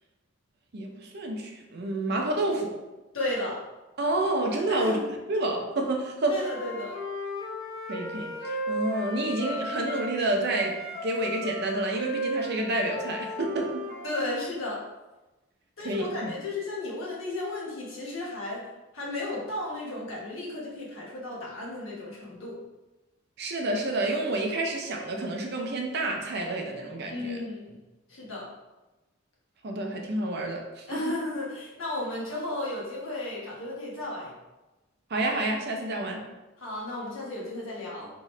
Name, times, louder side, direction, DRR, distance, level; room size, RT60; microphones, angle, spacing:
voice 1, 0.7-2.7 4.0-5.0 5.3-6.4 7.9-10.8 11.0-13.9 15.8-16.3 23.4-27.4 29.6-31.2 35.1-36.2, right 2 dB, 50° right, 1 dB, 0.6 m, -29 dB
voice 2, 3.1-3.6 4.7-5.0 6.3-7.0 14.0-14.8 15.8-18.6 18.9-22.6 27.1-27.8 28.1-28.5 30.9-34.3 36.6-38.1, left 2 dB, 70° left, -5 dB, 1.3 m, -34 dB
Wind instrument woodwind instrument, 6.4-10.2 10.4-14.3, equal, 25° left, 1.4 m, -35 dB
3.7 x 3.0 x 3.2 m, 1.1 s
head